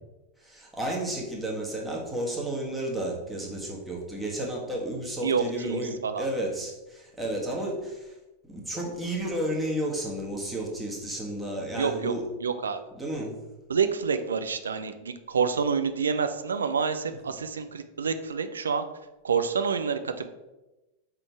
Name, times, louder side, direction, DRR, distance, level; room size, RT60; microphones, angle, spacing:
voice 1, 0.4-8.1 8.5-12.3 12.9-13.4 17.3-17.4, right 1 dB, 5° right, -3 dB, 1.6 m, -32 dB
voice 2, 5.2-6.2 11.8-12.1 12.4-12.8 13.7-18.8 19.2-20.3, right 6 dB, 70° right, 9 dB, 0.5 m, -28 dB
5.6 x 3.9 x 4.6 m, 1.0 s
figure-of-eight pair, 90°, 0 cm